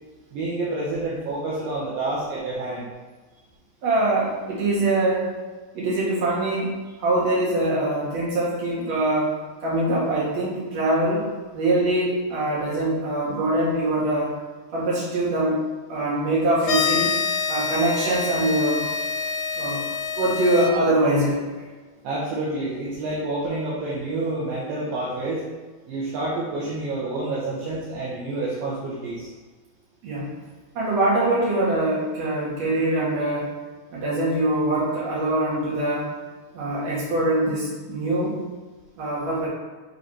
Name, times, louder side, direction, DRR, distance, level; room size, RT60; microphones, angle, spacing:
voice 1, 0.3-2.9 17.4-17.5 22.0-25.4 25.9-29.3, right 2 dB, 75° right, -6 dB, 2.6 m, -28 dB
voice 2, 3.8-5.3 5.7-9.3 9.6-14.3 14.7-15.6 15.9-17.1 17.5-18.9 19.5-19.8 20.2-21.4 30.0-30.3 30.7-33.5 33.9-36.1 36.5-38.4 39.0-39.5, right 1 dB, 50° right, -7 dB, 3.1 m, -23 dB
sound 1, 16.6-20.7, left 6 dB, 75° left, 2.3 m, -26 dB
8.0 x 3.9 x 4.3 m, 1.3 s
omnidirectional pair, 4.4 m